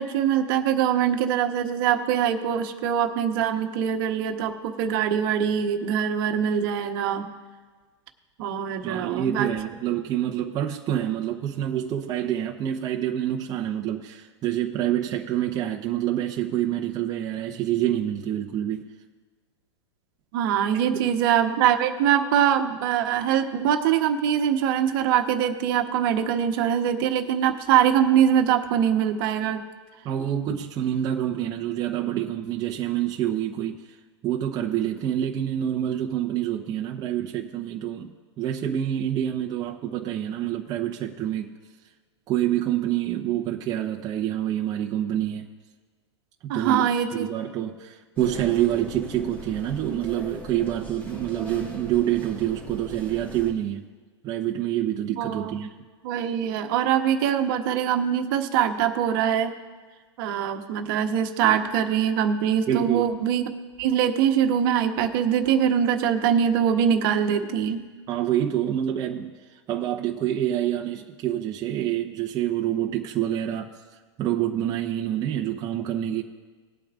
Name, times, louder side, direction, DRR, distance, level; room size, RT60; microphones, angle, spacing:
voice 1, 0.0-7.3 8.4-9.5 20.3-29.6 46.5-47.3 55.1-55.6 56.0-59.5 60.2-63.5 63.8-67.8, right 9 dB, 50° right, 5 dB, 1.2 m, -23 dB
voice 2, 8.8-18.8 20.9-21.1 30.0-34.0 34.2-41.5 42.3-45.5 46.4-53.8 54.2-55.7 62.7-63.1 68.1-73.7 74.2-76.2, right 11 dB, 25° right, 1 dB, 0.9 m, -27 dB
sound 1, 48.2-53.5, equal, 10° left, 2.8 m, -40 dB
20.0 x 8.6 x 2.5 m, 1.4 s
hypercardioid pair, 130°, 15 cm